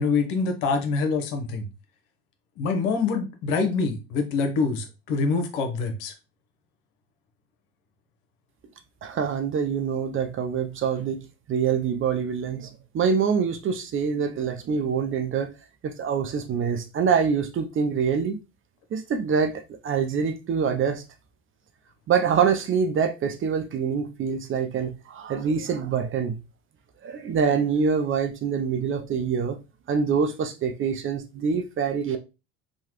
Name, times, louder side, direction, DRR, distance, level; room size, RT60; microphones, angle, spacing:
voice 1, 0.0-1.7 2.6-6.1, left 4 dB, 65° left, 1.0 m, -25 dB
voice 2, 9.0-12.7 12.9-15.5 15.8-18.4 18.9-21.0 22.1-26.3 27.0-29.6 29.9-32.2, right 6 dB, 35° right, 0.6 m, -25 dB
3.1 x 2.3 x 2.9 m
hypercardioid pair, 70°, 38 cm